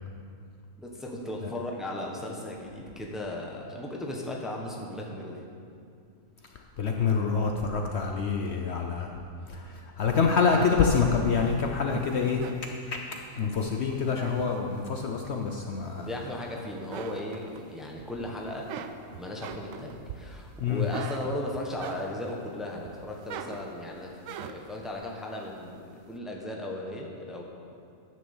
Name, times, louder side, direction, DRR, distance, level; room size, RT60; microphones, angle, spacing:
voice 1, 0.8-5.4 16.0-18.7 19.1-27.4, left 1 dB, ahead, -1 dB, 1.0 m, -36 dB
voice 2, 6.8-9.1 9.5-12.4 12.9-13.0 13.3-16.1 20.6-20.9, left 5 dB, 60° left, 2 dB, 0.9 m, -26 dB
sound 1, 10.0-13.5 13.9-15.0 15.5-16.5 16.8-18.0 18.4-22.4 22.8-24.8, right 8 dB, 80° right, 1.0 m, -41 dB
10.0 x 6.3 x 7.1 m, 2.4 s
omnidirectional pair, 1.4 m